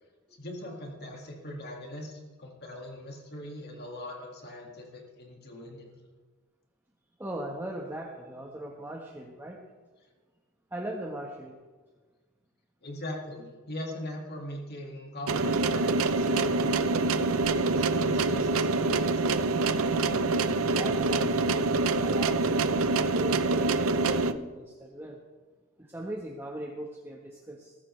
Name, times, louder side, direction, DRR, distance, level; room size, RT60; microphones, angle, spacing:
voice 1, 0.4-5.9 12.8-17.3 17.7-19.4, left 1 dB, 50° left, 0 dB, 2.0 m, -41 dB
voice 2, 7.2-9.6 10.7-11.6 20.7-25.2 25.8-27.8, right 1 dB, 10° right, -1 dB, 1.2 m, -40 dB
sound 1, 15.3-24.3, right 3 dB, 70° right, 0.7 m, -26 dB
20.5 x 14.5 x 3.3 m, 1.4 s
head